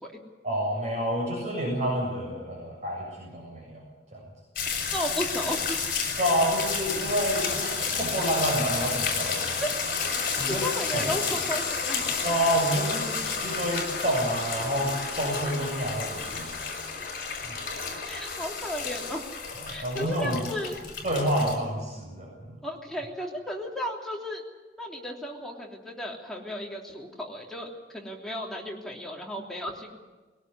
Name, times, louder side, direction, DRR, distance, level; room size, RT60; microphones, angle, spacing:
voice 1, 0.4-3.8 4.1-4.2 6.2-9.6 10.4-10.7 10.9-11.0 12.2-13.1 13.4-16.6 17.4-17.5 19.8-20.4 21.0-22.6, equal, 40° right, -2 dB, 7.2 m, -28 dB
sound 1, 4.6-21.6, left 5 dB, 55° left, 6.4 m, -31 dB
voice 2, 4.9-5.8 9.6-9.7 10.5-12.0 18.1-19.3 19.7-20.8 22.6-24.4 24.8-30.0, equal, 5° left, -2 dB, 3.2 m, -34 dB
21.5 x 18.5 x 9.6 m, 1.2 s
head